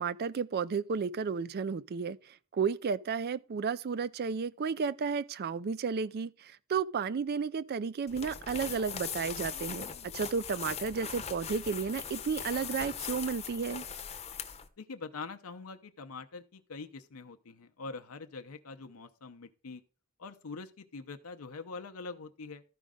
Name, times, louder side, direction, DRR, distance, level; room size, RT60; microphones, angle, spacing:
voice 1, 0.0-13.8, right 5 dB, 45° right, 0.4 m, -33 dB
sound 1, 8.1-14.7, left 7 dB, 30° left, 0.8 m, -40 dB
voice 2, 14.8-19.8 20.2-22.6, left 4 dB, 80° left, 0.7 m, -44 dB
13.0 x 5.1 x 3.7 m
head